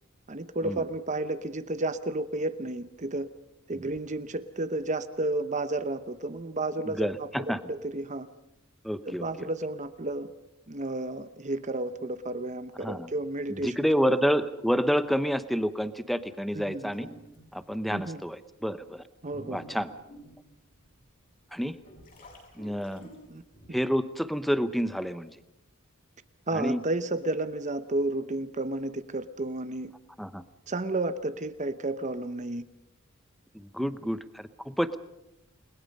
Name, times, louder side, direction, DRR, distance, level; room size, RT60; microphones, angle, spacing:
voice 1, 0.3-3.3 3.7-8.3 9.0-10.3 10.7-14.2 16.5-16.9 17.9-18.2 19.2-19.6 23.3-23.4 23.7-23.8 26.5-29.9 30.7-32.6 33.8-33.9, right 2 dB, 35° right, 11 dB, 0.9 m, -32 dB
voice 2, 7.0-7.6 8.8-9.3 12.8-13.1 13.5-17.1 17.5-19.0 19.5-19.9 21.5-21.8 22.6-23.0 23.7-25.4 26.5-26.8 30.2-30.4 33.5-35.0, equal, ahead, 12 dB, 0.8 m, -29 dB
sound 1, 16.9-17.6 18.3-18.4 19.0-21.1 21.6-23.7, equal, 40° left, 7.1 m, -49 dB
30.0 x 20.5 x 5.4 m, 0.86 s
head